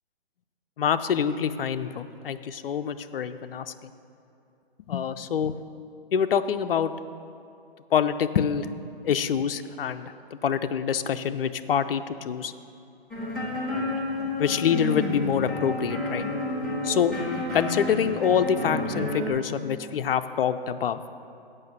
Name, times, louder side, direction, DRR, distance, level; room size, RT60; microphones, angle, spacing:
voice 1, 0.8-3.9 4.9-5.5 6.1-6.9 7.9-8.7 9.0-12.5 13.7-13.9 14.4-16.3 16.8-17.1 17.5-21.0, left 8 dB, 65° left, 10 dB, 0.5 m, -26 dB
sound 1, 13.1-19.3, left 2 dB, ahead, 1.5 m, -30 dB
7.7 x 5.9 x 7.7 m, 2.7 s
hypercardioid pair, 160°, 31 cm